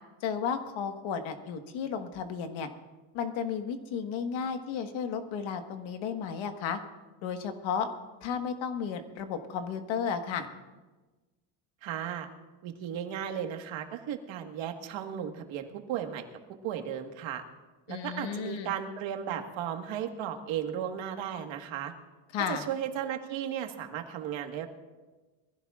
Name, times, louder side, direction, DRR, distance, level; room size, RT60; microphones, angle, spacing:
voice 1, 0.2-2.7 3.1-6.8 7.2-7.9 8.2-10.5 17.9-18.7 22.3-22.7, left 7 dB, 65° left, 6 dB, 1.6 m, -33 dB
voice 2, 11.8-12.3 12.6-16.2 16.6-17.4 17.9-21.9 22.5-24.7, right 9 dB, 65° right, 5 dB, 1.7 m, -35 dB
22.5 x 15.5 x 2.5 m, 1.2 s
cardioid pair, 125°, 50 cm